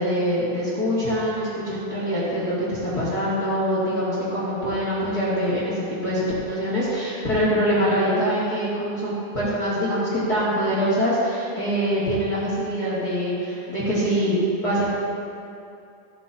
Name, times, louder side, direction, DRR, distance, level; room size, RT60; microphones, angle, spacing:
voice 1, 0.0-14.9, equal, 30° left, -10 dB, 1.8 m, -24 dB
16.5 x 8.2 x 2.8 m, 2.5 s
omnidirectional pair, 5.3 m